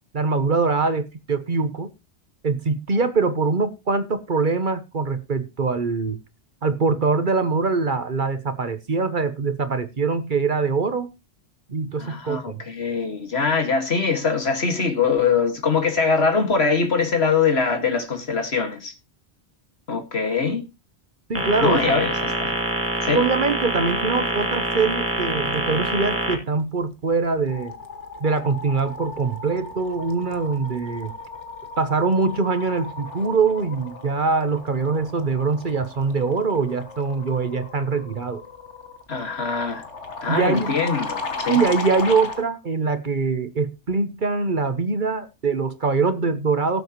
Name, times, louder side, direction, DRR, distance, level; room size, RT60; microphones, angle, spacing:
voice 1, 0.1-1.9 2.4-6.2 6.6-11.1 11.7-12.6 21.3-21.8 23.1-27.7 28.2-31.1 31.8-38.4 40.3-40.7 41.5-46.8, right 4 dB, 45° right, 1.1 m, -23 dB
voice 2, 12.0-18.9 19.9-20.6 21.6-22.5 23.0-23.2 39.1-39.8 40.2-41.6, left 5 dB, 65° left, 2.2 m, -23 dB
sound 1, 21.3-26.3, right 1 dB, 10° right, 2.4 m, -25 dB
sound 2, 26.6-26.9 27.2-42.5, left 3 dB, 90° left, 1.7 m, -35 dB
18.0 x 8.0 x 3.0 m
omnidirectional pair, 1.2 m